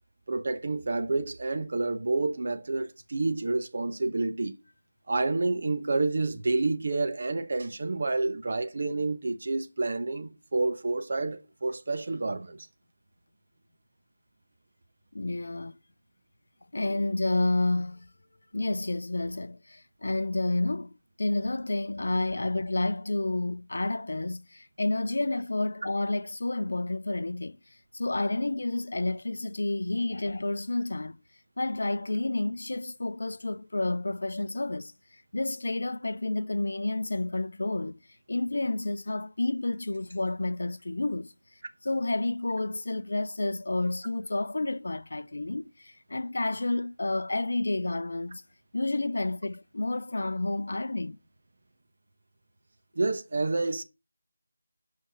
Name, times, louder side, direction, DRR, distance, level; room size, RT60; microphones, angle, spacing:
voice 1, 0.3-4.5 5.1-12.6 53.0-53.8, right 3 dB, 50° right, 1.0 m, -29 dB
voice 2, 15.1-15.8 16.7-18.1 18.5-27.6 27.9-31.2 31.6-38.0 38.3-41.3 41.8-48.4 48.7-51.2, left 2 dB, 60° left, 0.4 m, -30 dB
5.7 x 5.5 x 5.8 m
figure-of-eight pair, 165°, 0 cm